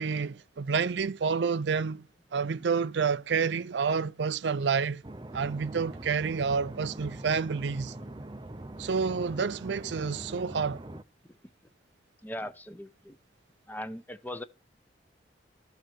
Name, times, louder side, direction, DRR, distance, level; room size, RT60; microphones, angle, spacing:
voice 1, 0.0-2.1 2.3-5.0 5.3-7.9 8.8-10.8, right 5 dB, 75° right, 0.5 m, -29 dB
sound 1, 5.0-11.0, right 1 dB, 25° right, 0.6 m, -43 dB
voice 2, 12.2-13.2 13.7-14.4, left 1 dB, 10° left, 0.7 m, -40 dB
14.0 x 4.6 x 7.7 m
head